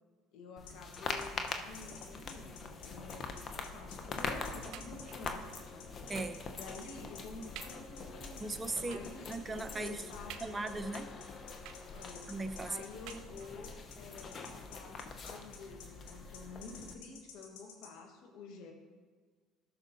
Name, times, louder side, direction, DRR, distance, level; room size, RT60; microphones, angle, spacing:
voice 1, 0.3-5.9 6.5-8.5 8.8-9.4 9.8-10.7 11.9-12.3 12.6-18.7, left 3 dB, 70° left, 3 dB, 1.4 m, -50 dB
sound 1, 0.6-17.0, left 4 dB, 45° left, 0.8 m, -44 dB
sound 2, 0.7-17.9, left 7 dB, 85° left, 1.1 m, -52 dB
sound 3, 4.7-5.4 6.2-6.5 7.0-7.1 7.6-7.9 8.9-9.2 10.3-10.9 11.7-12.3 13.1-13.7 14.6-14.7 15.0-15.1, right 10 dB, 70° right, 0.4 m, -52 dB
voice 2, 6.1-6.4 8.4-10.0 10.4-11.1 12.3-12.8, right 2 dB, 25° right, 10 dB, 0.7 m, -38 dB
13.5 x 6.3 x 2.7 m, 1.5 s
hypercardioid pair, 70°, 0 cm